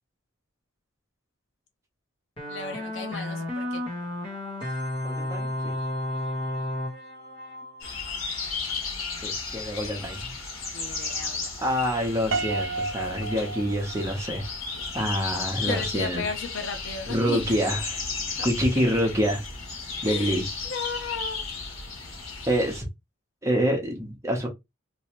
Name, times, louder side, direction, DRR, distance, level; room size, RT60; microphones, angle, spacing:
sound 1, 2.4-8.5, left 1 dB, 25° left, 1.5 m, -32 dB
voice 1, 2.5-3.8 10.7-11.5 14.8-14.9 15.6-17.8 18.4-18.5 20.0-20.4 20.7-21.4, left 4 dB, 65° left, 0.9 m, -34 dB
voice 2, 5.0-5.7 9.2-10.3 11.6-14.5 14.9-16.2 17.1-18.0 18.4-19.4 20.0-20.4 22.5-22.8 23.4-24.5, equal, 15° right, 1.0 m, -26 dB
sound 2, 7.8-22.8, left 4 dB, 80° left, 1.6 m, -34 dB
Piano, 12.3-14.5, right 4 dB, 60° right, 0.5 m, -32 dB
3.1 x 3.1 x 3.0 m
head